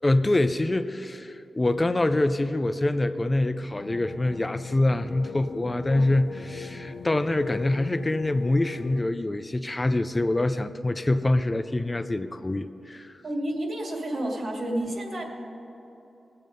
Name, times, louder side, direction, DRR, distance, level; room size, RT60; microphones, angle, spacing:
voice 1, 0.0-13.1, left 2 dB, 25° left, 10 dB, 0.5 m, -25 dB
sound 1, 3.7-9.0, left 6 dB, 90° left, 0.6 m, -39 dB
voice 2, 13.2-15.2, right 1 dB, 65° right, -1 dB, 2.5 m, -30 dB
19.0 x 7.8 x 5.4 m, 3.0 s
cardioid pair, 70°, 0 cm